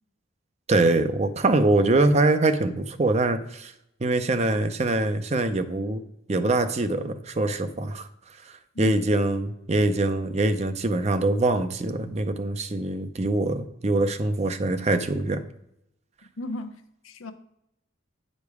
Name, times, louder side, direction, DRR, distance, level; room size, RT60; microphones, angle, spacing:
voice 1, 0.7-3.7 4.0-6.0 6.3-8.1 8.8-15.4, right 2 dB, 35° right, 0.5 m, -23 dB
voice 2, 16.4-17.3, left 2 dB, 90° left, 0.8 m, -35 dB
9.2 x 5.2 x 4.8 m
head